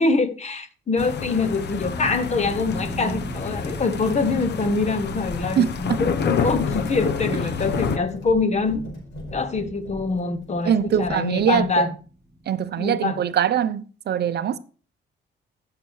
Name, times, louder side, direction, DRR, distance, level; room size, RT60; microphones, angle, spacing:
voice 1, 0.0-8.8 9.3-11.9 12.8-13.2, left 3 dB, 35° left, 1.1 m, -24 dB
sound 1, 1.0-8.0, left 6 dB, 60° left, 0.9 m, -29 dB
sound 2, 1.8-12.5 12.8-13.1 13.5-13.6, right 1 dB, 10° right, 4.1 m, -39 dB
sound 3, 5.0-11.7, left 1 dB, 85° left, 4.5 m, -39 dB
voice 2, 5.6-6.0 10.6-11.9 12.5-14.6, right 9 dB, 55° right, 0.6 m, -22 dB
14.0 x 6.7 x 3.2 m
cardioid pair, 90°, 20 cm